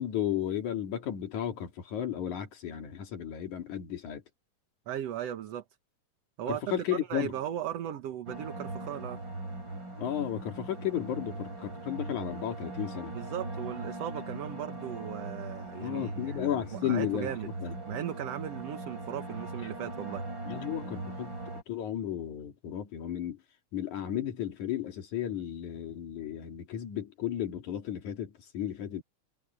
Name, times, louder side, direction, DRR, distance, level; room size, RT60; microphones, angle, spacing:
voice 1, 0.0-4.2 6.5-7.3 10.0-13.1 15.8-17.7 20.5-21.3 21.7-23.4 23.7-29.0, left 10 dB, 75° left, 3.6 m, -34 dB
voice 2, 4.9-5.6 6.4-6.6 6.9-9.2 13.1-17.5 17.9-20.2, right 10 dB, 60° right, 2.1 m, -37 dB
sound 1, 8.3-21.6, right 2 dB, 35° right, 7.1 m, -40 dB
omnidirectional pair, 3.5 m